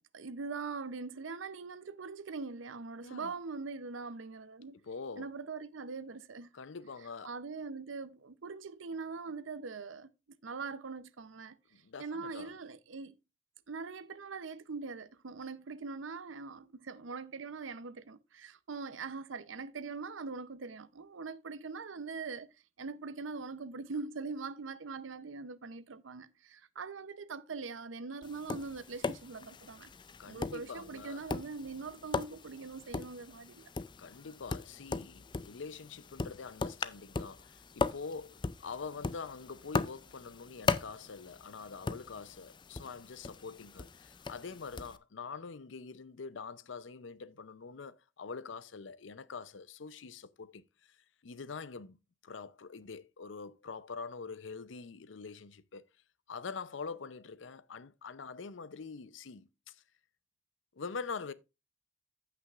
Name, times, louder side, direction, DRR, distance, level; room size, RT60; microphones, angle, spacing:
voice 1, 0.0-4.7 5.2-6.5 7.2-10.1 10.4-11.6 12.0-13.1 13.7-22.5 22.8-29.9 30.3-33.7, right 4 dB, 90° right, 0.7 m, -42 dB
voice 2, 4.8-5.3 6.5-7.3 11.7-12.5 30.2-31.2 34.0-51.0 51.2-52.0 52.2-55.9 56.3-59.8 60.7-61.3, left 5 dB, 75° left, 0.6 m, -45 dB
Tap, 28.2-45.0, left 4 dB, 25° left, 0.4 m, -39 dB
15.0 x 5.8 x 2.4 m
head